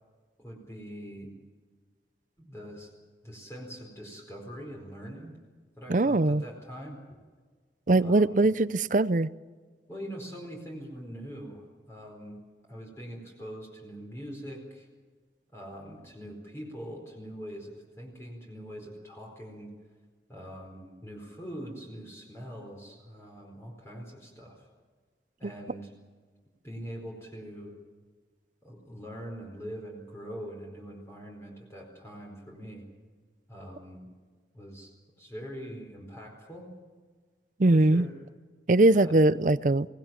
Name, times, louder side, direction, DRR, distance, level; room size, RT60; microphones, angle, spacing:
voice 1, 0.4-1.3 2.4-2.9 3.2-5.3 5.8-7.2 7.9-8.5 9.9-12.4 12.7-14.9 15.5-19.7 20.3-24.6 25.4-25.9 26.6-27.7 28.6-32.8 33.5-34.1 34.5-36.7 37.7-38.1 38.9-39.2, equal, 15° left, 4.5 m, -43 dB
voice 2, 5.9-6.4 7.9-9.3 25.4-25.5 37.6-38.1 38.7-39.9, right 2 dB, 45° right, 0.6 m, -21 dB
24.5 x 18.5 x 7.5 m
head